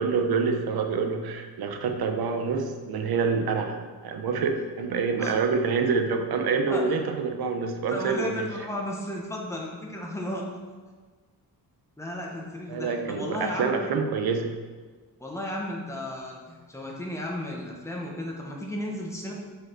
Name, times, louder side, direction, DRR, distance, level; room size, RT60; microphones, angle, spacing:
voice 1, 0.0-8.5 12.7-14.5, right 5 dB, 80° right, 5 dB, 1.0 m, -27 dB
voice 2, 7.9-10.5 12.0-13.7 15.2-19.3, left 1 dB, 10° left, -2 dB, 1.2 m, -34 dB
6.4 x 5.6 x 4.6 m, 1.4 s
wide cardioid pair, 165°, 37 cm